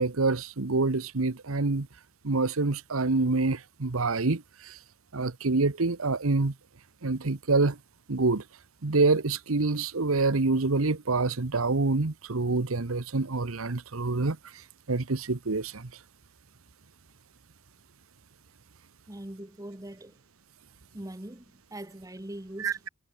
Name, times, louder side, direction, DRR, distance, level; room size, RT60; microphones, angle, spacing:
voice 1, 0.0-1.9 2.2-4.8 5.1-6.5 7.0-7.8 8.1-8.4 8.8-14.4 14.9-15.9 22.6-22.9, right 3 dB, 75° right, 1.1 m, -26 dB
voice 2, 19.1-20.2 20.9-21.4 21.7-22.8, right 1 dB, 15° right, 1.4 m, -41 dB
head